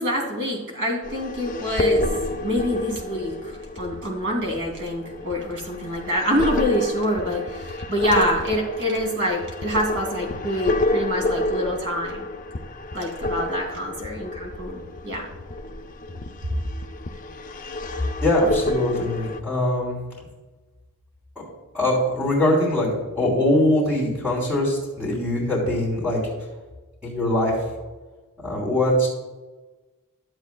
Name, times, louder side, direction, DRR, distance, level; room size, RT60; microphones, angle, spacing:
voice 1, 0.0-2.0 2.4-12.2 12.9-15.3 16.4-16.5, equal, 55° right, -1 dB, 3.0 m, -26 dB
sound 1, 1.0-19.4, left 2 dB, 35° left, 0.5 m, -29 dB
voice 2, 18.2-19.9 21.7-26.2 27.0-27.5 28.4-29.1, left 1 dB, 5° right, -9 dB, 3.1 m, -22 dB
13.0 x 7.9 x 2.3 m, 1.2 s
head